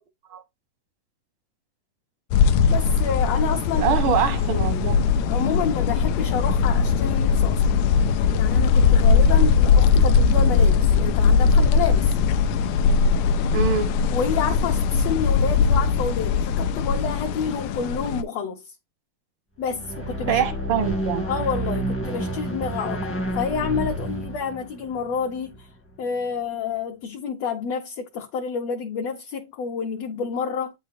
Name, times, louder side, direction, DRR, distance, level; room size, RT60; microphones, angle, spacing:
sound 1, 2.3-18.2, left 5 dB, 90° left, 1.7 m, -20 dB
voice 1, 2.7-4.2 5.2-7.9 8.3-12.2 14.1-18.7 19.6-20.4 21.3-25.7 26.0-30.7, left 6 dB, 75° left, 1.5 m, -29 dB
voice 2, 3.8-5.0 13.5-13.9 20.3-21.2, right 8 dB, 75° right, 1.1 m, -24 dB
sound 2, 19.6-26.0, right 1 dB, 15° left, 0.4 m, -30 dB
8.7 x 6.3 x 2.6 m
omnidirectional pair, 4.0 m